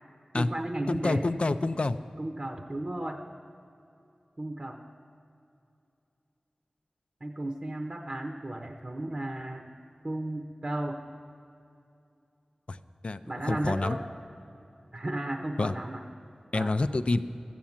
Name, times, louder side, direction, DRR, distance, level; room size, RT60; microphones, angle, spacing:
voice 1, 0.3-1.2 2.2-3.2 4.4-4.8 7.2-9.7 10.0-11.0 13.3-14.0 14.9-16.0 16.5-16.8, right 1 dB, 40° right, 3 dB, 0.7 m, -34 dB
voice 2, 0.9-2.0 12.7-12.8 13.0-14.0 15.6-15.7 16.5-17.2, left 2 dB, 55° left, 11 dB, 0.4 m, -27 dB
13.0 x 8.3 x 7.2 m, 2.7 s
cardioid pair, 45°, 2 cm